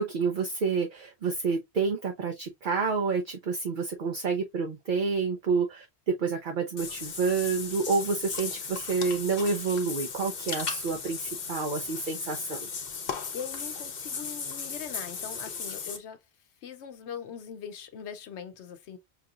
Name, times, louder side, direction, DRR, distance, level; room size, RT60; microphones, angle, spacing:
voice 1, 0.0-12.6, right 4 dB, 55° right, 0.8 m, -29 dB
Water / Bathtub (filling or washing), 6.8-16.0, left 5 dB, 60° left, 1.1 m, -36 dB
voice 2, 13.3-16.2 16.6-19.0, left 7 dB, 80° left, 0.9 m, -41 dB
5.9 x 2.9 x 2.4 m
omnidirectional pair, 1.1 m